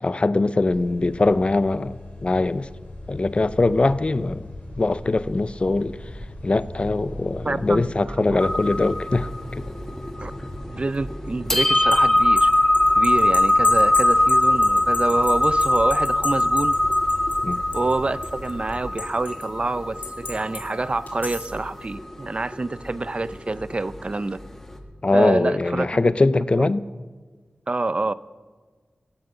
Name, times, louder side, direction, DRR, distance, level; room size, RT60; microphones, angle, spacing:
voice 1, 0.0-2.7 3.1-4.5 4.8-6.0 6.4-9.6 17.4-17.6 25.0-26.8, left 2 dB, 40° left, 0.5 m, -22 dB
sound 1, 0.6-18.9, left 1 dB, 65° left, 4.0 m, -38 dB
voice 2, 7.4-7.8 8.2-8.5 10.2-10.3 10.7-12.5 13.0-16.7 17.7-24.4 25.1-26.1 26.3-26.7 27.7-28.1, right 3 dB, 40° right, 0.5 m, -27 dB
sound 2, 8.4-24.8, left 1 dB, 10° left, 1.7 m, -22 dB
sound 3, 11.6-18.0 18.2-19.4 20.0-20.6 21.1-21.6, left 5 dB, 90° left, 2.1 m, -33 dB
16.0 x 9.0 x 6.9 m
wide cardioid pair, 55°, 3 cm